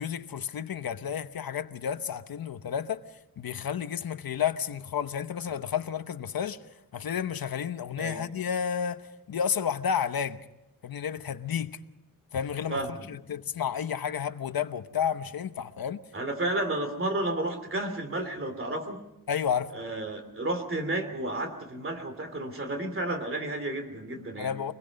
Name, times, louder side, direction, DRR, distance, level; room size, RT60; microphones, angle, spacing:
voice 1, 0.0-3.0 3.4-6.6 6.9-9.0 9.3-10.4 10.8-11.8 12.3-12.8 13.1-16.0 19.3-19.8 24.3-24.7, left 8 dB, 85° left, 1.0 m, -31 dB
voice 2, 12.7-13.1 16.1-19.0 19.7-24.5, right 2 dB, 35° right, 3.0 m, -32 dB
25.5 x 21.0 x 5.3 m
wide cardioid pair, 180°, 35 cm